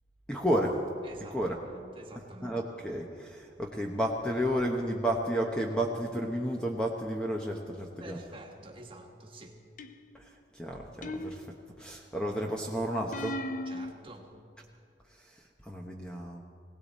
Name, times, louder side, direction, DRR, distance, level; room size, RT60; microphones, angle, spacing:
voice 1, 0.3-0.8 1.3-1.6 2.4-8.2 10.1-10.2 10.5-13.4 15.2-16.4, equal, 5° left, 0 dB, 0.9 m, -32 dB
voice 2, 1.0-2.6 8.0-9.6 13.6-14.3, right 1 dB, 30° right, 1 dB, 1.5 m, -48 dB
sound 1, 9.8-10.3 11.0-11.9 13.1-13.9, left 1 dB, 45° left, 0.6 m, -37 dB
19.5 x 18.0 x 4.2 m, 2.3 s
head